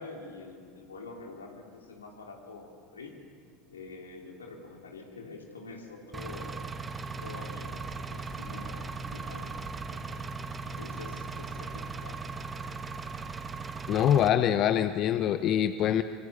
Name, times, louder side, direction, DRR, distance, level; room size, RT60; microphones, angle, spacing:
voice 1, 0.0-3.2 3.7-6.6 7.2-12.2, left 3 dB, 85° left, 2 dB, 3.5 m, -46 dB
Engine, 6.1-14.3, right 4 dB, 20° right, 1.6 m, -38 dB
voice 2, 13.9-16.0, left 10 dB, 45° left, 11 dB, 0.9 m, -24 dB
24.5 x 24.5 x 8.4 m, 2.1 s
hypercardioid pair, 75°, 0 cm